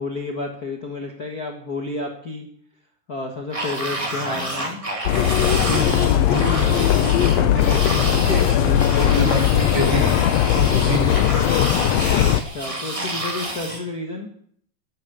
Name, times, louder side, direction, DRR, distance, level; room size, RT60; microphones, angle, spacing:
voice 1, 0.0-2.5 3.1-4.8 10.9-11.4 12.2-14.3, left 2 dB, 40° left, 2 dB, 1.5 m, -31 dB
sound 1, 3.5-13.8, right 1 dB, 15° right, 1.6 m, -29 dB
sound 2, 5.1-12.4, left 12 dB, 75° left, 1.6 m, -19 dB
voice 2, 5.5-11.5, right 1 dB, 40° right, 3 dB, 2.6 m, -28 dB
12.5 x 12.5 x 7.0 m, 0.62 s
omnidirectional pair, 3.6 m